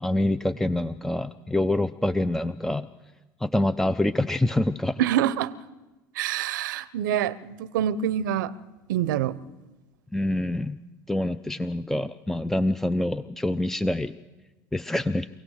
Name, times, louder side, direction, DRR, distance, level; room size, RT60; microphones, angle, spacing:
voice 1, 0.0-2.9 3.4-5.0 10.1-10.8 11.1-14.1 14.7-15.3, left 1 dB, 5° left, 0.6 m, -26 dB
voice 2, 5.0-5.5 6.2-8.5 8.9-9.4, right 11 dB, 80° right, 0.8 m, -26 dB
26.5 x 17.0 x 6.5 m
hypercardioid pair, 80°, 10 cm